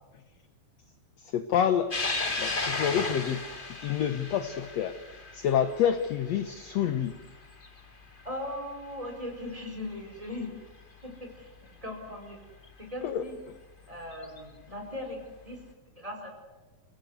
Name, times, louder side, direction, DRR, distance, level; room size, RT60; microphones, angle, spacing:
voice 1, 1.2-2.0 2.4-3.4 3.8-5.0 5.3-7.2 13.0-13.2, left 9 dB, 70° left, 9 dB, 1.6 m, -27 dB
sound 1, 1.9-8.6 9.0-9.1 10.4-10.5 12.6-12.7 14.1-14.4, left 3 dB, 25° left, 1.3 m, -35 dB
voice 2, 8.2-10.5 11.0-12.4 12.8-13.4 13.9-15.2 15.4-15.6 16.0-16.3, left 1 dB, 10° right, 2 dB, 4.7 m, -39 dB
28.5 x 17.5 x 8.0 m, 1.2 s
omnidirectional pair, 4.1 m